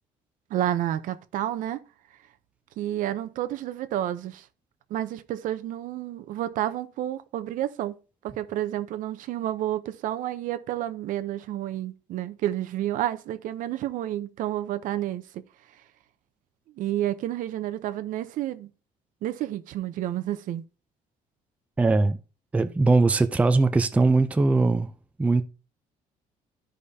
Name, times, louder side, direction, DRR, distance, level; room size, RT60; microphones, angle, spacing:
voice 1, 0.5-1.8 2.8-4.5 4.9-8.0 8.2-15.4 16.8-18.7 19.2-20.6, right 12 dB, 65° right, 0.7 m, -30 dB
voice 2, 21.8-22.2 22.5-24.9 25.2-25.4, right 3 dB, 10° right, 0.4 m, -20 dB
13.0 x 5.0 x 2.7 m
cardioid pair, 150°, 15 cm